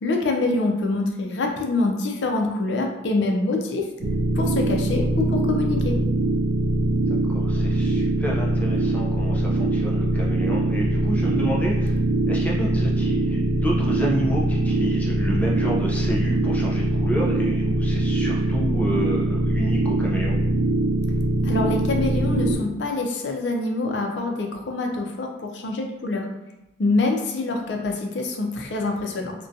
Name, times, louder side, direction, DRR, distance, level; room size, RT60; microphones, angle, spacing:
voice 1, 0.0-3.8 4.3-6.0 21.4-26.3 26.8-29.3, left 2 dB, 75° left, 2 dB, 0.4 m, -25 dB
sound 1, 4.0-22.6, right 1 dB, 85° right, 0.4 m, -22 dB
voice 2, 7.1-12.0 12.2-20.4, equal, 10° left, -4 dB, 0.3 m, -30 dB
2.4 x 2.2 x 2.6 m, 0.90 s
head